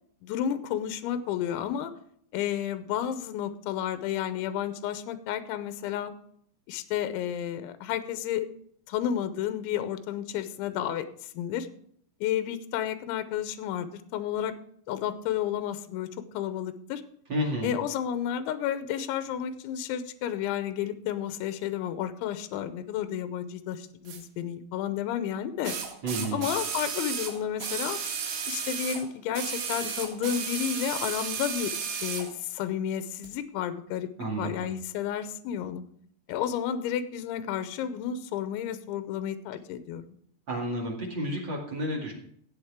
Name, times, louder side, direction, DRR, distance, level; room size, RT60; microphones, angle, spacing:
voice 1, 0.2-1.9 2.3-6.1 6.7-8.5 8.9-11.7 12.2-14.5 14.9-16.1 16.3-17.0 17.6-25.8 26.3-28.0 28.5-31.7 32.0-34.1 34.4-35.8 36.3-40.2, left 10 dB, 85° left, 11 dB, 3.1 m, -31 dB
voice 2, 17.3-17.7 26.0-26.5 34.2-34.6 40.5-42.1, right 1 dB, 40° right, -2 dB, 1.9 m, -31 dB
sound 1, 24.1-24.2 25.6-29.0 29.3-32.3 33.2-33.3, right 6 dB, 75° right, 4.3 m, -33 dB
14.5 x 8.6 x 3.6 m, 0.64 s
omnidirectional pair, 5.4 m